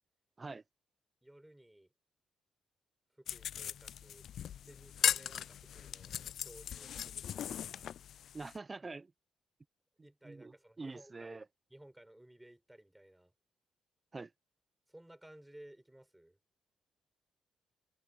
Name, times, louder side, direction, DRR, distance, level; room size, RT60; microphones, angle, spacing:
voice 1, 1.2-1.9 3.1-4.3 4.7-8.0 10.0-11.4 11.7-13.3 14.9-16.4, right 1 dB, 5° right, 6.0 m, -58 dB
sound 1, 3.3-8.6, left 9 dB, 65° left, 0.4 m, -38 dB
voice 2, 8.3-9.1 10.2-11.4 14.1-14.3, right 3 dB, 25° right, 0.7 m, -45 dB
cardioid pair, 90°, 0 cm